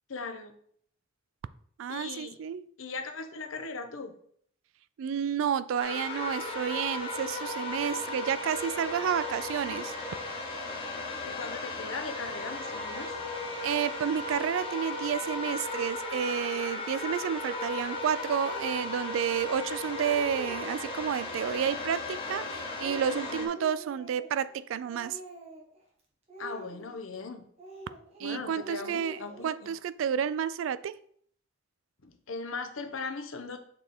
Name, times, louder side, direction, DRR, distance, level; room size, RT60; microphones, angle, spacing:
voice 1, 0.1-0.5 1.9-2.4 2.8-4.1 11.2-13.2 23.3-23.5 26.4-27.5 28.2-29.7 32.0-33.6, left 4 dB, 80° left, 0.8 m, -39 dB
voice 2, 1.8-2.7 5.0-9.9 13.6-25.2 28.2-30.9, right 8 dB, 75° right, 0.3 m, -30 dB
sound 1, 5.8-23.5, left 2 dB, 25° left, 0.9 m, -36 dB
Speech, 18.4-18.7 19.5-19.6 19.9-20.8 21.2-21.8 22.3-24.6 24.8-25.8 26.3-27.2 27.6-28.3 28.6-29.7, right 2 dB, 30° right, 1.5 m, -47 dB
6.8 x 3.6 x 4.2 m
head